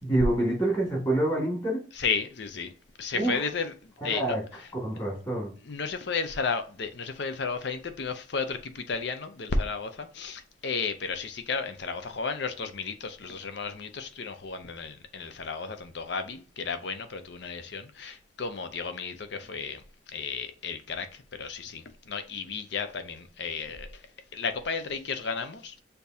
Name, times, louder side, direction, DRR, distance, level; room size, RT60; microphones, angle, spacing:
voice 1, 0.0-1.8 3.1-3.4 4.0-4.4 4.8-5.5, right 1 dB, 20° left, 1.9 m, -27 dB
voice 2, 1.9-2.7 3.0-4.4 5.6-19.8 20.1-24.0 24.3-25.8, left 5 dB, 60° left, 0.6 m, -33 dB
6.6 x 2.7 x 2.7 m
head